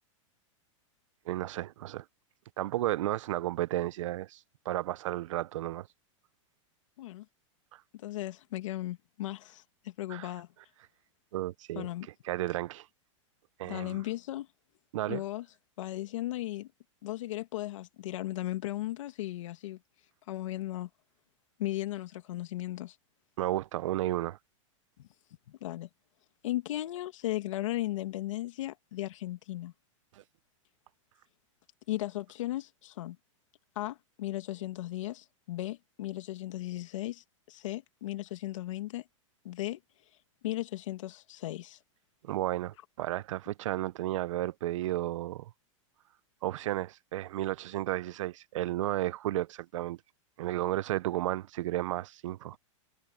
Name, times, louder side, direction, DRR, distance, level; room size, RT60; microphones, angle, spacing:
voice 1, 1.3-2.0 2.6-5.9 7.7-7.8 10.1-10.3 11.3-11.9 12.2-12.9 13.6-14.0 14.9-15.2 23.4-24.4 30.1-30.2 42.2-45.5 46.4-50.0 50.4-52.6, right 14 dB, 70° right, 0.8 m, -33 dB
voice 2, 7.9-10.5 11.8-12.1 13.6-14.5 15.1-15.4 15.8-16.7 17.0-19.8 20.3-20.9 21.6-23.0 25.5-25.9 26.4-29.7 31.9-33.2 33.8-39.0 39.4-39.8 40.4-41.8, left 15 dB, 75° left, 2.0 m, -36 dB
supercardioid pair, 140°, 17 cm